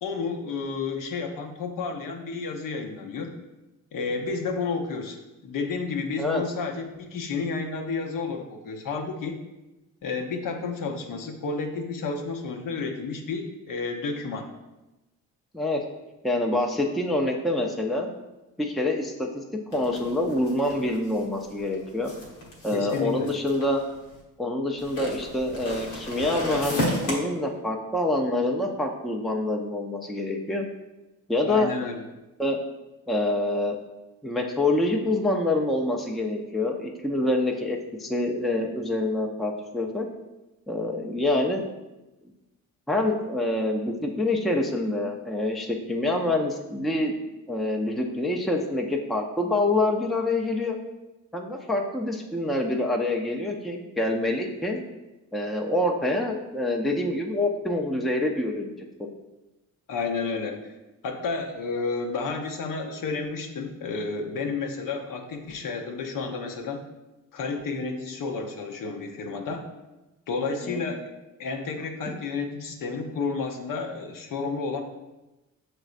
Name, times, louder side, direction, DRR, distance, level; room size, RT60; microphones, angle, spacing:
voice 1, 0.0-3.3 3.9-9.4 10.0-14.5 22.7-23.3 31.4-32.1 59.9-60.7 61.0-66.8 67.3-69.7 70.3-71.0 71.4-74.8, left 4 dB, 55° left, 3 dB, 0.7 m, -31 dB
voice 2, 16.2-18.1 18.6-22.1 22.6-23.8 24.4-30.7 31.3-31.7 32.4-32.6 33.1-33.8 34.2-40.1 40.7-41.6 42.9-47.1 47.5-50.8 51.3-54.8 55.3-58.7 59.0-59.1 70.6-70.8 72.0-72.1, left 2 dB, ahead, 2 dB, 0.5 m, -26 dB
sound 1, 19.7-24.1 24.8-27.1, left 1 dB, 80° left, 1.0 m, -32 dB
5.9 x 3.2 x 2.5 m, 1.0 s
hypercardioid pair, 45°, 41 cm